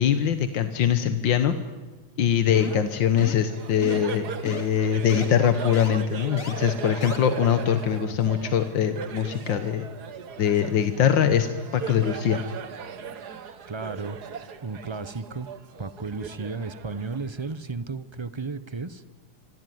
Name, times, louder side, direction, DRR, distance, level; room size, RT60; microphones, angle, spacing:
voice 1, 0.0-1.5 2.2-9.9 10.4-11.5 11.7-12.4, left 9 dB, 90° left, 10 dB, 1.9 m, -22 dB
sound 1, 2.5-2.9 3.2-3.5 3.8-4.1 4.5-4.6 5.1-5.3 5.7-5.9 6.4-6.5 7.0-7.2, left 4 dB, 45° left, 3.1 m, -36 dB
Laughter, 2.7-17.7, right 7 dB, 60° right, 1.9 m, -38 dB
voice 2, 13.7-14.2 14.6-15.5 15.8-19.0, right 4 dB, 25° right, 14 dB, 0.7 m, -34 dB
25.0 x 25.0 x 9.5 m, 1.3 s
omnidirectional pair, 2.0 m